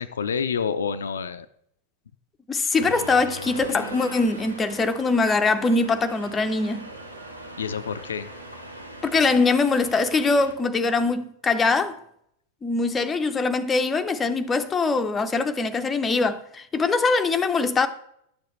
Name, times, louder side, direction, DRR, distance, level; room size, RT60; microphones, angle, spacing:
voice 1, 0.0-1.5 7.6-8.3, left 6 dB, 70° left, 0.4 m, -28 dB
voice 2, 2.5-6.9 9.0-12.0 12.6-17.9, left 3 dB, 15° left, 0.6 m, -22 dB
Accelerating revving vroom, 2.8-10.5, right 1 dB, 85° right, 1.0 m, -40 dB
10.5 x 6.9 x 3.1 m
figure-of-eight pair, 90°, 0 cm